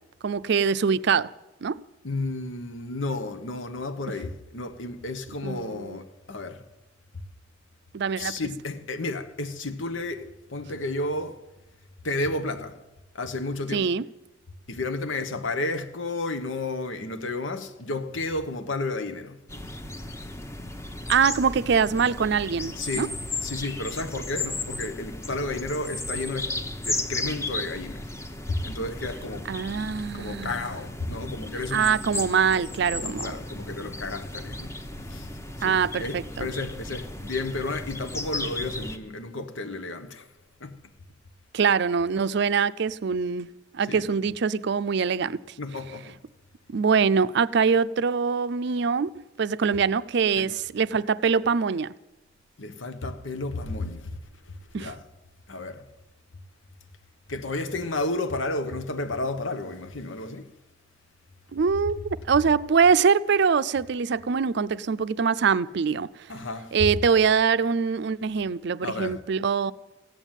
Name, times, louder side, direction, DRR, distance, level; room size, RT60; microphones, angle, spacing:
voice 1, 0.2-1.3 1.6-1.8 5.4-6.0 7.9-8.4 13.7-14.1 21.1-23.1 29.5-30.6 31.7-33.3 35.6-36.5 41.5-43.5 43.7-45.4 46.7-51.9 54.7-54.9 61.5-62.0 62.3-66.1 66.7-69.7, right 6 dB, 60° right, 0.4 m, -23 dB
voice 2, 2.0-6.6 8.2-11.4 12.0-12.8 13.1-13.9 14.7-19.4 22.8-23.1 23.4-28.1 28.5-29.5 30.1-32.0 32.9-34.8 35.1-35.3 35.6-40.3 40.6-40.8 43.9-44.1 45.6-46.2 50.4-50.5 52.6-54.2 54.4-55.1 55.5-55.9 57.3-60.5 66.3-66.9 68.8-69.2, left 2 dB, 90° left, 1.1 m, -32 dB
sound 1, 19.5-39.0, left 2 dB, 15° left, 0.9 m, -35 dB
15.5 x 9.1 x 9.0 m
head